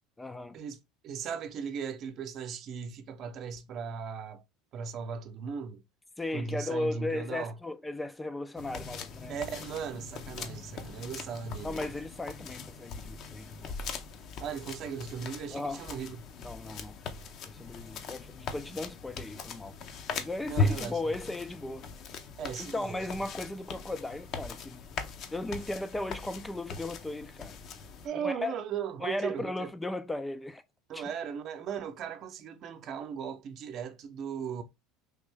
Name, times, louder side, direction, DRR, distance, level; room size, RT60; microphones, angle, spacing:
voice 1, 0.2-0.6 6.2-9.3 10.4-10.5 11.6-13.7 15.5-15.8 16.4-17.0 17.4-19.8 20.1-21.9 22.6-24.8 25.3-27.6 28.2-28.6 29.0-30.6 30.9-31.0, left 2 dB, 10° left, 0.3 m, -36 dB
voice 2, 1.0-4.4 4.7-5.8 6.3-7.5 9.3-11.8 14.4-16.2 20.5-21.1 22.4-23.1 28.0-29.7 30.9-34.6, right 7 dB, 50° right, 0.6 m, -37 dB
sound 1, 8.6-28.1, left 4 dB, 50° left, 0.6 m, -39 dB
3.5 x 2.6 x 3.4 m
supercardioid pair, 95°, 0 cm